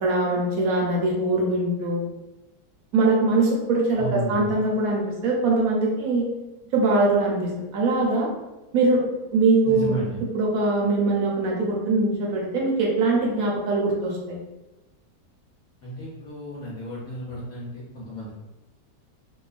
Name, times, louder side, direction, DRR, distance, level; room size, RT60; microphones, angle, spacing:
voice 1, 0.0-2.1 2.9-6.3 6.7-8.3 8.7-9.0 9.3-9.9 10.3-14.4, right 2 dB, 65° right, -2 dB, 0.9 m, -22 dB
voice 2, 4.0-4.5 9.6-10.1 15.8-18.3, right 1 dB, 65° left, -8 dB, 1.0 m, -32 dB
2.9 x 2.1 x 2.4 m, 1.0 s
omnidirectional pair, 1.8 m